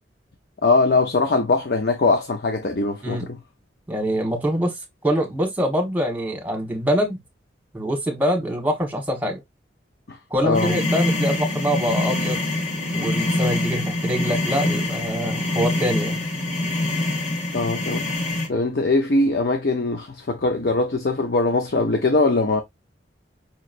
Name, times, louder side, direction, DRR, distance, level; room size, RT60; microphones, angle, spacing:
voice 1, 0.6-3.4 10.1-10.2 10.4-10.8 17.5-18.1 18.5-22.6, left 3 dB, 60° left, 0.7 m, -21 dB
voice 2, 3.9-4.7 5.0-7.2 7.7-9.4 10.3-12.4 12.9-16.2, equal, 10° right, 1.2 m, -24 dB
sound 1, 10.5-18.5, left 2 dB, 40° left, 1.3 m, -24 dB
5.5 x 3.0 x 2.5 m
head